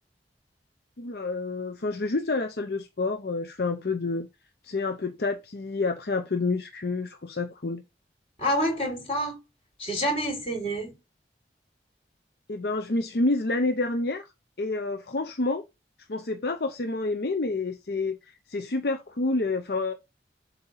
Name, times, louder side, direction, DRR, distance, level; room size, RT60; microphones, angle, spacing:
voice 1, 1.0-4.3 4.6-7.8 12.5-14.3 14.6-15.6 16.1-19.9, left 3 dB, 65° left, 0.6 m, -28 dB
voice 2, 8.4-9.4 9.8-11.0, equal, 35° left, 3.8 m, -27 dB
7.6 x 2.8 x 5.6 m
head